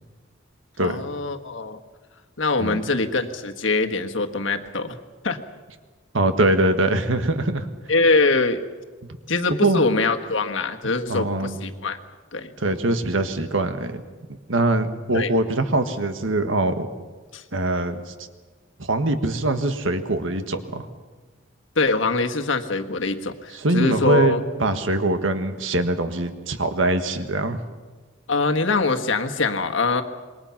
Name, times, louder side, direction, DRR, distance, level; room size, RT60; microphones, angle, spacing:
voice 1, 0.8-1.8 2.4-5.0 5.2-5.4 7.9-8.6 9.3-12.0 12.3-12.5 15.1-15.3 17.3-17.4 21.7-24.4 28.3-30.0, left 3 dB, 75° left, 5 dB, 1.6 m, -23 dB
voice 2, 6.1-7.7 9.5-9.8 11.1-11.5 12.6-14.0 14.5-16.9 17.5-18.1 18.8-20.9 23.5-27.6, right 2 dB, 80° right, 8 dB, 1.6 m, -23 dB
27.0 x 22.5 x 5.9 m, 1.4 s
head